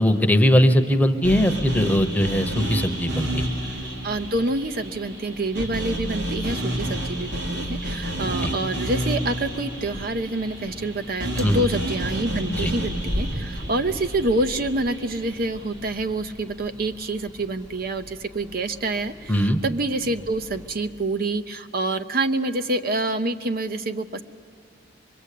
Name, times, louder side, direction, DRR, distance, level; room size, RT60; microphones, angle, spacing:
voice 1, 0.0-3.4 8.4-8.5 11.4-11.7 12.6-12.7 19.3-19.6, equal, 10° left, 7 dB, 0.9 m, -20 dB
sound 1, 1.2-15.4, right 1 dB, 75° right, 3.1 m, -30 dB
sound 2, 1.6-20.9, equal, 20° right, 0.9 m, -40 dB
voice 2, 3.7-24.2, right 2 dB, 55° right, 9 dB, 0.8 m, -27 dB
24.5 x 22.0 x 8.4 m, 2.4 s
head